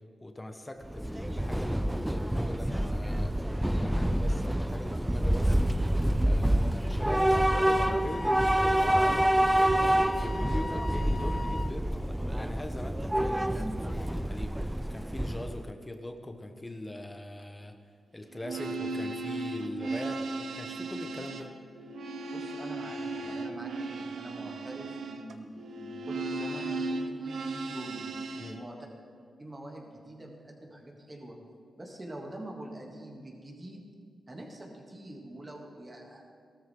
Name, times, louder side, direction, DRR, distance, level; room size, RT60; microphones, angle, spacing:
voice 1, 0.2-3.3 3.7-5.6 6.2-9.3 9.8-12.0 12.4-17.7 18.1-21.5 28.3-28.6, left 1 dB, 20° left, 5 dB, 1.3 m, -41 dB
Train / Subway metro underground, 0.8-15.7, right 1 dB, 10° right, 0.5 m, -27 dB
Wind instrument woodwind instrument, 7.3-11.8, left 3 dB, 45° left, 0.5 m, -39 dB
sound 1, 18.3-28.6, right 3 dB, 80° right, 1.0 m, -36 dB
voice 2, 22.3-28.1 28.5-28.8 29.4-31.4 31.8-33.9 34.3-36.2, right 1 dB, 30° right, -1 dB, 3.0 m, -45 dB
17.5 x 13.0 x 3.9 m, 2.3 s
cardioid pair, 65°, 0 cm